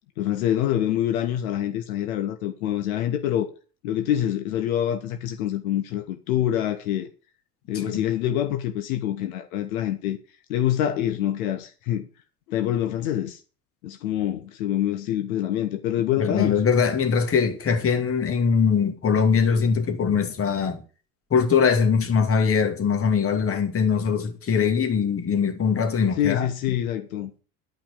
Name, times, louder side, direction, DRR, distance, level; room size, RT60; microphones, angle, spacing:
voice 1, 0.2-3.5 3.8-7.1 7.7-10.2 10.5-12.1 12.5-13.4 13.8-16.6 26.2-27.3, left 11 dB, 65° left, 1.5 m, -26 dB
voice 2, 16.2-20.8 21.3-26.5, left 6 dB, 30° left, 2.4 m, -22 dB
12.0 x 5.8 x 7.3 m
hypercardioid pair, 75°, 45 cm